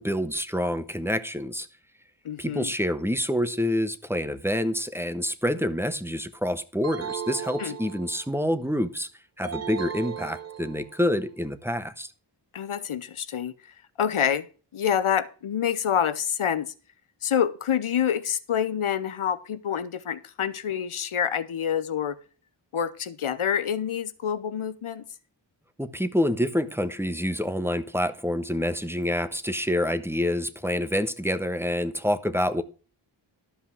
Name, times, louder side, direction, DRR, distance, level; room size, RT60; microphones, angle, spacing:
voice 1, 0.0-1.7 2.4-9.1 9.4-12.1 25.8-32.6, left 1 dB, 5° right, 1.1 m, -27 dB
voice 2, 2.2-2.7 7.6-7.7 12.5-13.5 14.0-14.5 14.7-16.7 17.2-22.2 22.7-25.0, left 8 dB, 90° left, 0.8 m, -27 dB
sound 1, 6.8-8.4 9.4-11.0, right 8 dB, 35° right, 0.5 m, -36 dB
12.5 x 5.6 x 6.0 m
wide cardioid pair, 45°, 48 cm